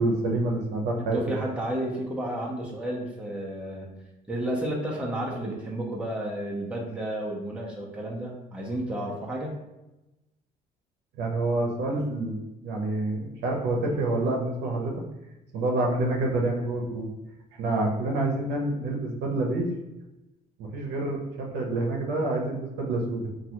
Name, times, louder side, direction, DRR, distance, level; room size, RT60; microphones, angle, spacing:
voice 1, 0.0-1.2 11.2-12.4 12.6-15.0 15.5-17.1 17.6-19.7 20.6-23.5, right 2 dB, 80° right, 0 dB, 0.7 m, -27 dB
voice 2, 1.1-4.0 4.3-9.5, right 1 dB, 5° right, -3 dB, 0.7 m, -32 dB
3.1 x 2.3 x 2.9 m, 0.98 s
cardioid pair, 110°, 17 cm